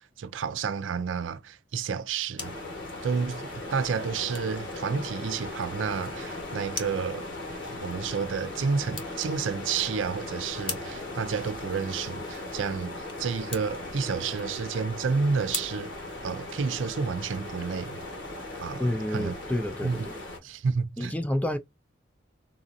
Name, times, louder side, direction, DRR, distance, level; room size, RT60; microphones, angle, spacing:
voice 1, 0.2-2.5 3.0-7.3 7.8-15.9 16.2-18.0 18.6-19.4 19.8-20.1 20.4-21.1, right 5 dB, 90° right, 0.4 m, -30 dB
sound 1, 2.0-16.9, left 4 dB, 25° left, 0.8 m, -44 dB
sound 2, 2.4-20.4, left 2 dB, 75° left, 1.4 m, -38 dB
voice 2, 18.8-20.2 21.0-21.6, left 1 dB, 10° left, 0.4 m, -29 dB
4.0 x 2.4 x 2.6 m
head